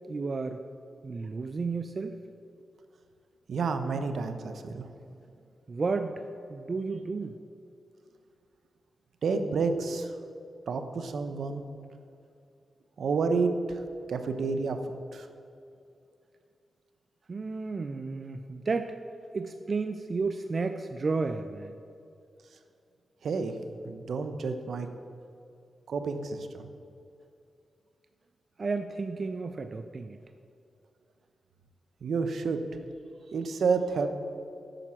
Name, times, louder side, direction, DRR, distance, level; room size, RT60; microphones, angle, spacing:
voice 1, 0.1-0.6 1.0-2.2 5.7-6.2 6.5-7.3 17.3-18.9 19.3-21.7 28.6-30.2, right 4 dB, 50° right, 8 dB, 0.4 m, -32 dB
voice 2, 3.5-4.9 9.2-10.1 10.7-11.6 13.0-13.8 14.1-14.8 15.1-15.3 23.2-23.5 23.8-24.9 25.9-26.8 32.0-32.6 33.3-34.1, right 4 dB, 75° right, 8 dB, 0.7 m, -29 dB
9.0 x 6.0 x 5.7 m, 2.6 s
cardioid pair, 65°, 0 cm